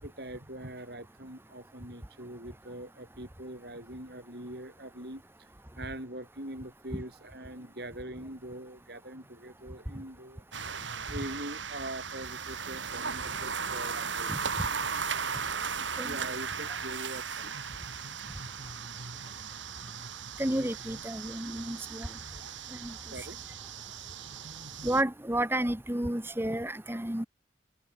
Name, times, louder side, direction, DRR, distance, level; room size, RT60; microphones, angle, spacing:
voice 1, 0.0-10.4 11.1-14.6 15.2-17.9 18.2-18.4 19.0-19.2 20.5-20.6 23.1-23.4, right 1 dB, 55° right, 6.6 m, -43 dB
sound 1, 10.5-25.0, right 6 dB, 85° right, 4.3 m, -37 dB
voice 2, 20.4-22.1 22.8-22.9 24.8-27.3, right 1 dB, 10° right, 1.2 m, -31 dB
head